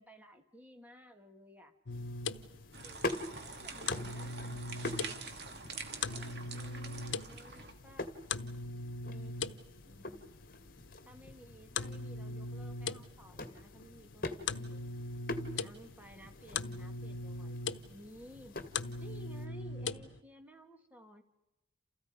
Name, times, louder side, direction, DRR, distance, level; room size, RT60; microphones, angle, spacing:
voice 1, 0.0-1.7 2.8-4.6 5.7-8.1 9.1-10.4 11.0-15.0 15.5-18.6 19.0-21.2, equal, 10° right, 5 dB, 2.2 m, -56 dB
sound 1, 1.9-20.2, left 4 dB, 85° left, 1.0 m, -41 dB
sound 2, 1.9-19.5, left 2 dB, 45° left, 2.0 m, -46 dB
sound 3, 2.7-7.7, right 4 dB, 60° right, 2.6 m, -46 dB
29.5 x 28.5 x 5.3 m, 0.91 s
head